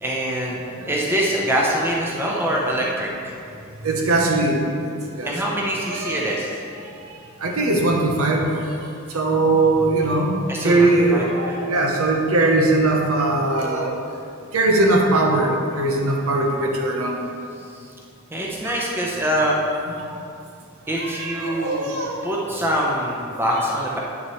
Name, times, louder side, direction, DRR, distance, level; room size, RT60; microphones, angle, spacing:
voice 1, 0.0-0.6 0.9-3.4 5.2-6.6 10.5-11.7 18.3-19.5 20.9-21.9 22.2-24.0, equal, 10° right, -3 dB, 0.8 m, -24 dB
voice 2, 3.8-4.8 5.2-6.3 6.9-8.7 9.1-10.3 10.6-14.0 14.5-17.2 18.6-18.8 19.9-20.1 20.9-22.2 22.7-22.8 23.5-23.9, right 2 dB, 75° right, 1 dB, 1.0 m, -21 dB
8.6 x 7.1 x 3.2 m, 2.5 s
head